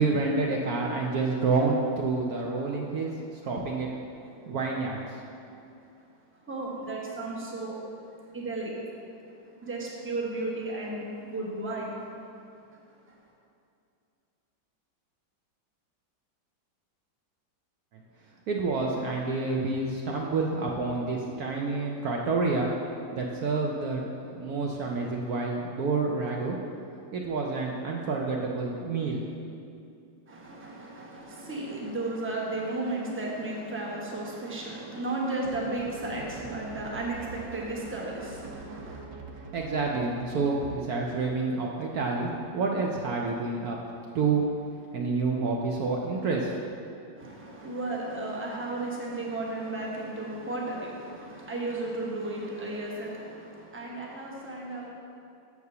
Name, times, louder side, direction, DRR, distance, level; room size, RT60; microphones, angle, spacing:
voice 1, 0.0-3.9 4.5-5.2 18.5-22.7 23.1-24.0 24.3-26.6 27.1-29.3 39.5-43.8 44.1-44.4 44.9-46.6, right 3 dB, 70° right, -1 dB, 0.9 m, -28 dB
voice 2, 6.4-7.8 8.2-8.7 9.6-12.0 12.7-12.8 13.1-13.2 30.3-39.0 47.1-54.9, right 2 dB, 15° right, -3 dB, 0.5 m, -34 dB
sound 1, 35.4-41.0, right 4 dB, 90° right, 1.5 m, -44 dB
6.8 x 4.7 x 6.7 m, 2.6 s
omnidirectional pair, 2.1 m